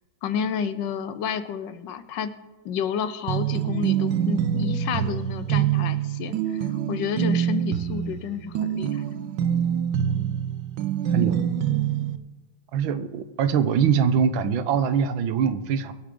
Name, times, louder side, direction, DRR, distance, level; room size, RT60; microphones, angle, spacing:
voice 1, 0.2-2.3 2.6-9.0, left 7 dB, 70° left, 12 dB, 1.3 m, -30 dB
sound 1, 3.3-12.2, right 9 dB, 70° right, 1.3 m, -25 dB
voice 2, 12.7-15.9, right 7 dB, 90° right, 12 dB, 1.6 m, -23 dB
23.0 x 8.4 x 3.8 m, 1.2 s
omnidirectional pair, 2.1 m